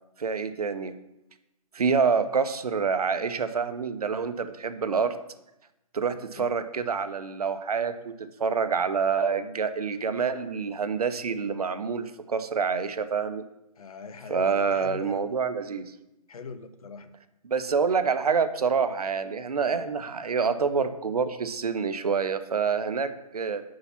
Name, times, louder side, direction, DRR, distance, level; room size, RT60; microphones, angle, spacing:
voice 1, 0.2-0.9 1.7-5.1 5.9-13.4 14.3-15.9 17.4-23.6, right 5 dB, 80° right, 11 dB, 0.7 m, -27 dB
voice 2, 6.1-6.5 13.8-15.3 16.3-17.2 19.7-19.9, left 5 dB, 70° left, 11 dB, 0.6 m, -42 dB
5.8 x 4.8 x 5.7 m, 0.90 s
figure-of-eight pair, 135°, 19 cm